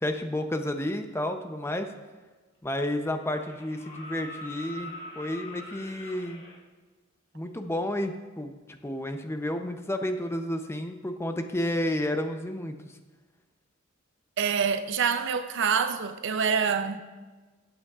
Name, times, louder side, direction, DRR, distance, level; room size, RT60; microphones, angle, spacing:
voice 1, 0.0-1.9 2.6-6.4 7.3-8.6 8.8-12.8, left 1 dB, 15° left, 0.6 m, -31 dB
sound 1, 2.2-2.3 3.3-6.6 8.3-8.4, left 1 dB, 50° left, 2.1 m, -43 dB
voice 2, 14.4-17.0, right 6 dB, 65° right, 0.6 m, -26 dB
17.5 x 8.0 x 2.4 m
head